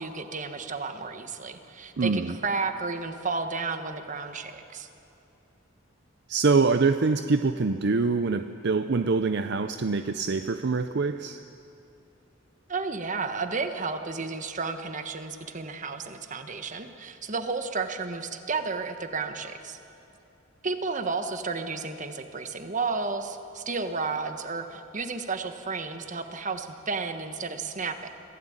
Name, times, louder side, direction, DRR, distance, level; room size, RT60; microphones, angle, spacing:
voice 1, 0.0-4.9 12.7-19.8 20.6-28.1, right 4 dB, 40° right, 7 dB, 1.4 m, -32 dB
voice 2, 2.0-2.3 6.3-11.4, right 4 dB, 60° right, 9 dB, 0.6 m, -25 dB
25.5 x 16.0 x 8.8 m, 2.8 s
head